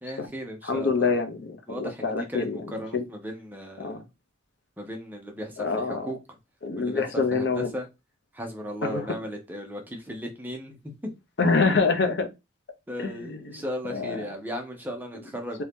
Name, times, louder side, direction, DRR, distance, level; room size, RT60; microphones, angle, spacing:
voice 1, 0.0-1.2 1.7-4.1 4.8-6.4 6.8-7.0 7.3-7.9 8.3-11.1 12.9-15.6, equal, 10° right, 0.6 m, -36 dB
voice 2, 0.6-2.6 2.9-3.0 3.8-4.0 5.6-6.1 6.6-7.7 8.8-9.1 11.4-12.3 13.0-13.5 13.9-14.2, left 4 dB, 60° left, 0.6 m, -26 dB
2.8 x 2.6 x 3.5 m
head